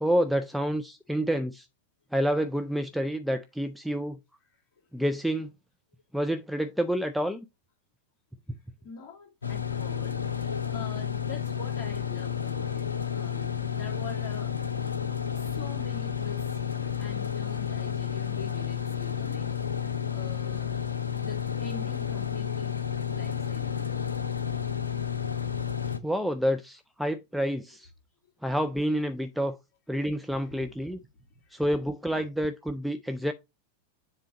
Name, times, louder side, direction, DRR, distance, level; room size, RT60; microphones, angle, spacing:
voice 1, 0.0-1.6 2.1-4.2 4.9-5.5 6.1-7.4 26.0-27.9 28.4-29.6 29.9-31.0 31.5-33.3, equal, ahead, 0.5 m, -28 dB
voice 2, 8.8-14.5 15.3-22.8 23.1-23.9 30.6-31.6 32.1-32.3, left 5 dB, 35° left, 2.4 m, -45 dB
sound 1, 9.4-26.0, left 8 dB, 75° left, 0.6 m, -31 dB
7.5 x 3.7 x 4.2 m
figure-of-eight pair, 90°, 0 cm